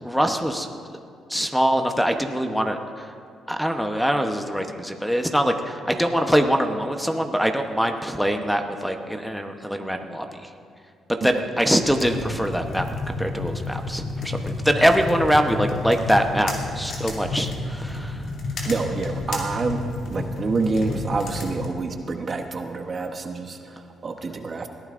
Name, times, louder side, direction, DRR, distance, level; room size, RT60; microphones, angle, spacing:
voice 1, 0.0-0.7 1.3-3.1 3.5-10.5 11.2-12.9 13.2-18.2, equal, ahead, 5 dB, 0.9 m, -23 dB
sound 1, 11.8-21.7, left 2 dB, 65° left, 2.7 m, -31 dB
voice 2, 18.6-19.8 20.1-24.7, right 3 dB, 40° right, 6 dB, 0.9 m, -27 dB
20.5 x 14.5 x 2.5 m, 2.3 s
cardioid pair, 90°, 0 cm